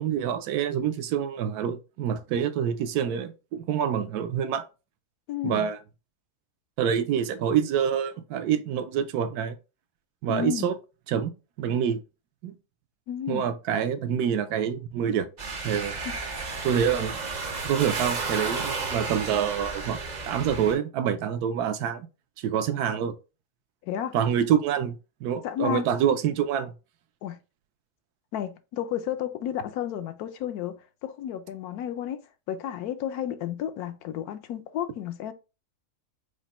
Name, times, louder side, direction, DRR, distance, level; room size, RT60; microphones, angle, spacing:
voice 1, 0.0-4.7 5.4-5.8 6.8-9.6 10.2-10.7 11.1-12.0 12.4-12.6 13.3-15.3 15.6-15.9 16.6-17.2 17.6-20.0 20.3-22.1 22.4-23.1 24.1-24.9 25.2-26.7, right 8 dB, 80° right, 1.1 m, -26 dB
voice 2, 5.3-5.7 10.3-10.7 13.1-13.4 23.8-24.1 25.4-25.8 27.2-27.4 28.3-35.3, left 10 dB, 75° left, 1.1 m, -32 dB
sound 1, 15.4-20.7, right 4 dB, 50° right, 0.5 m, -32 dB
5.0 x 2.1 x 4.2 m
omnidirectional pair, 1.7 m